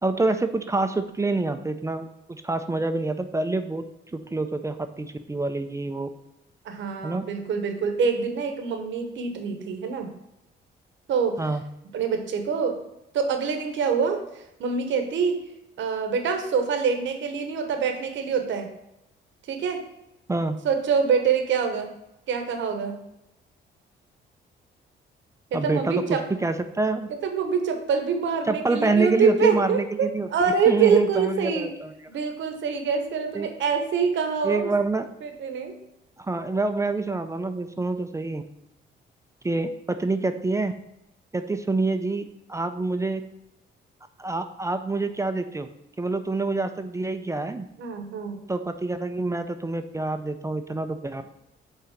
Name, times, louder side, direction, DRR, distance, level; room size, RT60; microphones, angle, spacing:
voice 1, 0.0-3.8 4.1-6.1 7.0-7.2 11.4-11.6 20.3-20.6 25.5-27.1 28.5-32.1 33.3-33.5 34.4-35.1 36.2-38.4 39.4-40.7 41.3-42.2 42.5-43.2 44.2-45.7 46.0-47.6 48.5-51.2, right 3 dB, 15° right, 8 dB, 0.5 m, -26 dB
voice 2, 6.6-10.1 11.1-11.4 11.9-12.8 13.1-14.2 14.6-15.4 15.8-18.7 19.5-19.8 20.6-22.0 22.3-22.9 25.5-26.2 27.1-31.7 32.1-34.7 35.2-35.7 47.8-48.4, right 6 dB, 70° right, 5 dB, 1.0 m, -25 dB
5.7 x 3.8 x 5.7 m, 0.88 s
cardioid pair, 90°, 20 cm